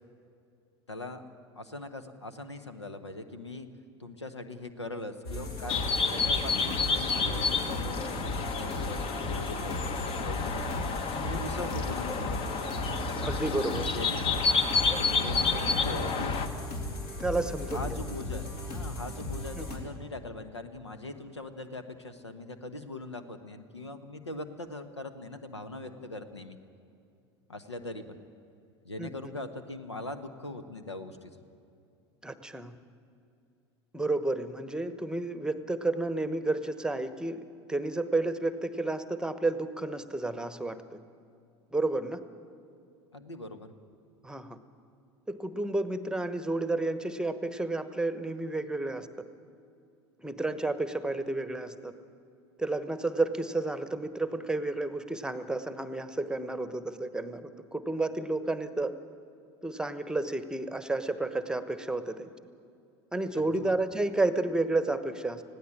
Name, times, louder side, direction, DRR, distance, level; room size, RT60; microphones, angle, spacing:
voice 1, 0.9-1.3 1.5-3.7 4.0-5.8 6.1-10.9 11.2-12.4 13.7-14.2 14.6-16.3 16.6-16.7 17.7-26.6 27.5-28.2 28.8-31.4 43.1-43.7 63.3-63.7, left 2 dB, 85° left, 10 dB, 1.2 m, -41 dB
sound 1, 5.2-19.8, left 2 dB, 60° left, 3.5 m, -37 dB
sound 2, 5.7-16.5, left 4 dB, 40° left, 1.4 m, -30 dB
voice 2, 13.2-13.9 17.2-18.0 19.6-19.7 29.0-29.1 32.2-32.7 33.9-37.4 37.7-41.0 41.7-42.2 44.2-44.6 45.3-49.1 50.2-51.9 52.6-58.9 59.6-62.3 63.1-65.4, right 2 dB, 5° right, 11 dB, 1.1 m, -31 dB
20.0 x 16.0 x 8.8 m, 2.6 s
figure-of-eight pair, 75°, 14 cm